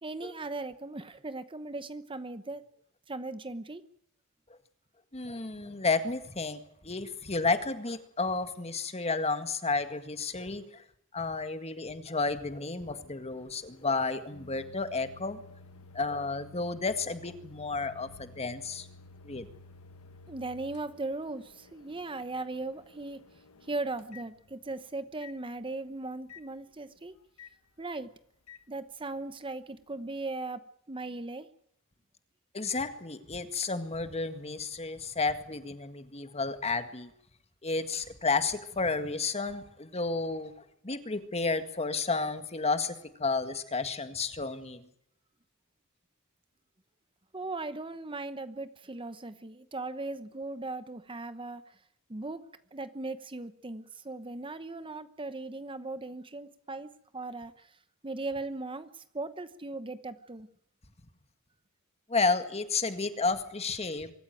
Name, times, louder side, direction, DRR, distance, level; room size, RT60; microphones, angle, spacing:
voice 1, 0.0-2.6 3.1-3.8 20.3-23.3 23.6-27.1 27.8-28.1 28.7-31.5 47.3-51.8 52.1-52.4 52.7-57.8 58.0-60.5, right 2 dB, 25° right, 12 dB, 0.9 m, -38 dB
voice 2, 5.1-10.8 11.1-15.4 15.9-18.9 19.2-19.5 32.5-37.1 37.6-40.5 40.8-42.9 43.2-44.9 62.1-64.1, left 3 dB, 30° left, 10 dB, 1.9 m, -32 dB
Microwave oven, 12.2-24.8 25.2-25.4 26.3-26.5 27.4-27.5 28.5-28.6, left 3 dB, 85° left, 1.4 m, -54 dB
24.5 x 14.0 x 9.2 m, 0.71 s
head